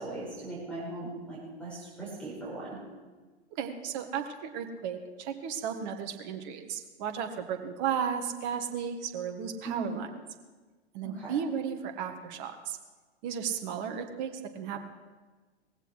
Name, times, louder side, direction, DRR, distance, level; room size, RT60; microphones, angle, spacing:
voice 1, 0.0-2.8 9.6-10.0 11.0-11.4, right 3 dB, 5° left, -6 dB, 5.5 m, -38 dB
voice 2, 3.5-10.1 10.9-12.8 13.2-14.9, right 7 dB, 40° right, 5 dB, 1.7 m, -34 dB
18.5 x 15.5 x 4.7 m, 1.3 s
figure-of-eight pair, 110°, 33 cm